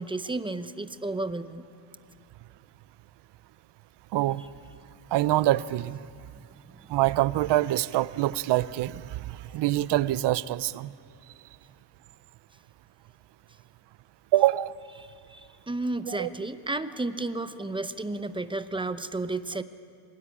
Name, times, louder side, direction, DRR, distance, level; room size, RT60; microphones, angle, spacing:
voice 1, 0.0-1.7 15.0-19.6, right 2 dB, 10° right, 11 dB, 0.7 m, -32 dB
voice 2, 4.1-4.4 5.1-6.0 6.9-10.9 14.3-14.7 16.1-16.3, right 15 dB, 55° right, 17 dB, 0.7 m, -25 dB
24.5 x 19.0 x 9.8 m, 2.3 s
cardioid pair, 135°, 49 cm